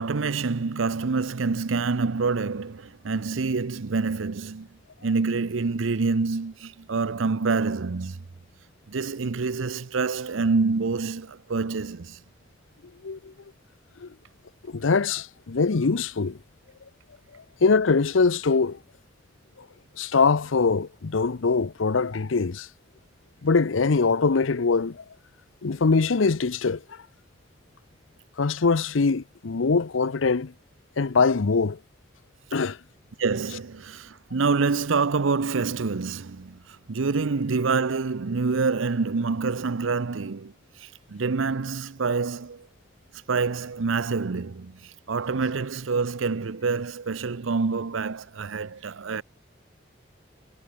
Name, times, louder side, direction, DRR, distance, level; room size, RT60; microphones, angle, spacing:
voice 1, 0.0-4.7 5.0-8.2 8.9-12.2 33.2-42.7 43.1-49.2, right 4 dB, 90° right, 0.7 m, -27 dB
voice 2, 13.0-13.3 14.0-14.1 14.7-16.4 17.3-18.8 20.0-22.7 23.4-25.0 25.6-26.8 28.4-30.5 31.0-31.8 32.5-32.8, left 4 dB, 90° left, 0.7 m, -23 dB
head